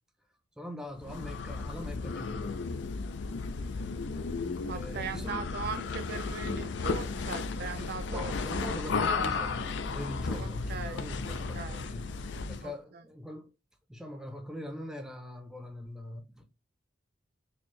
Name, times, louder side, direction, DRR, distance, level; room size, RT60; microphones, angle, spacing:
voice 1, 0.6-2.6 4.7-5.5 8.1-12.1 12.5-13.5 13.9-16.5, left 1 dB, 5° right, 0.6 m, -42 dB
sound 1, 1.0-12.7, left 4 dB, 65° left, 0.4 m, -34 dB
voice 2, 4.6-8.8 9.1-9.5 10.4-11.9 12.6-12.7, right 6 dB, 55° right, 0.4 m, -40 dB
4.3 x 2.7 x 3.1 m
head